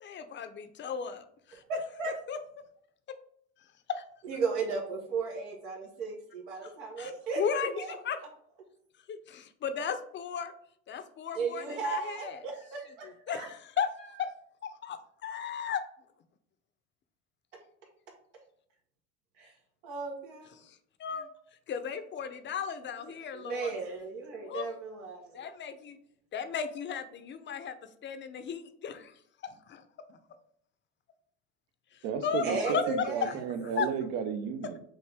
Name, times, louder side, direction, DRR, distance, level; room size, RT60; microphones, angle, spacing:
voice 1, 0.0-1.6 2.3-2.4 3.9-4.0 7.0-7.1 7.4-8.2 9.1-10.5 10.9-12.4 13.3-13.9 14.2-14.3 14.6-15.8 20.6-21.3 21.7-23.7 24.4-24.7 25.3-26.0 26.3-27.7 28.0-29.1 29.4-29.8 30.1-30.2 31.9-33.4 33.8-33.9, left 7 dB, 30° left, 10 dB, 0.5 m, -35 dB
voice 2, 1.7-2.1 4.2-8.0 11.3-13.5 19.4-19.5 19.8-20.5 23.3-25.5 32.4-33.4, right 4 dB, 90° right, -1 dB, 1.3 m, -35 dB
voice 3, 32.0-34.8, right 7 dB, 70° right, 8 dB, 0.8 m, -33 dB
5.6 x 2.6 x 3.4 m, 0.67 s
supercardioid pair, 100°, 35 cm